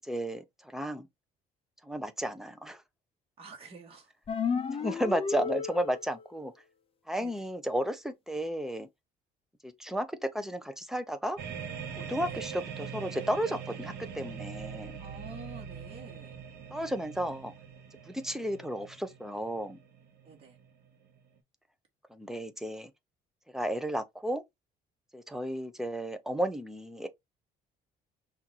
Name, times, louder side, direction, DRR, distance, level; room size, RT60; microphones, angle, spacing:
voice 1, 0.0-0.4 0.7-1.1 1.8-2.8 4.8-6.5 7.1-8.9 9.6-11.4 12.0-15.0 16.7-17.5 18.1-19.8 22.1-22.9 23.5-24.4 25.1-27.1, equal, 5° right, 0.9 m, -33 dB
voice 2, 3.4-4.1 7.2-7.3 12.1-12.4 15.0-16.3 20.2-20.6, right 4 dB, 35° right, 1.8 m, -48 dB
sound 1, 4.3-6.2, left 5 dB, 35° left, 0.7 m, -32 dB
sound 2, 11.4-21.4, right 7 dB, 70° right, 1.4 m, -43 dB
5.7 x 2.7 x 2.9 m
cardioid pair, 110°, 17 cm